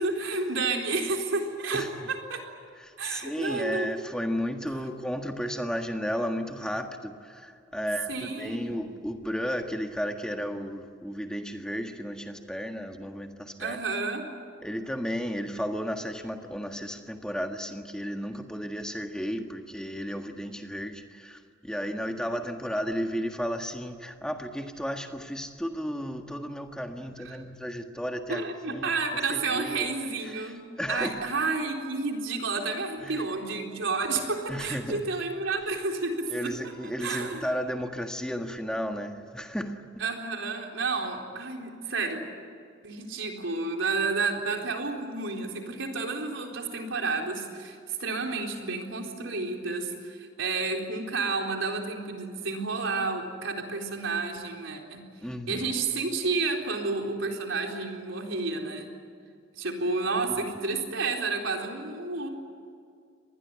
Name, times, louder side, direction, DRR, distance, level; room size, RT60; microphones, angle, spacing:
voice 1, 0.0-2.4 3.0-3.9 4.7-4.8 8.1-8.9 13.6-14.3 27.2-27.4 28.3-30.6 30.9-36.5 37.0-37.4 40.0-42.3 42.8-55.0 55.5-58.9 59.5-62.3, right 3 dB, 75° right, 2 dB, 4.0 m, -30 dB
voice 2, 2.8-13.8 14.6-28.4 28.7-29.9 30.2-31.2 33.0-33.3 34.5-35.0 36.3-39.8 55.2-55.7 60.2-60.4, equal, 5° left, 4 dB, 1.6 m, -33 dB
25.5 x 20.0 x 9.5 m, 2.3 s
head